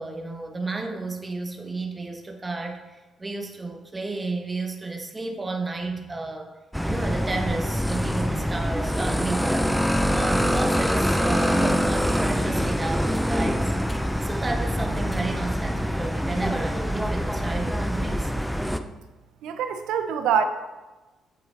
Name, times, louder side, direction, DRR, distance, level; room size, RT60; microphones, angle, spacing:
voice 1, 0.0-6.5 6.8-13.7 14.2-18.3, right 3 dB, 20° right, 3 dB, 1.1 m, -32 dB
sound 1, 6.7-18.8, equal, ahead, 0.5 m, -25 dB
voice 2, 19.4-20.5, right 7 dB, 90° right, 8 dB, 0.6 m, -24 dB
7.8 x 7.4 x 3.3 m, 1.2 s
cardioid pair, 90°, 0 cm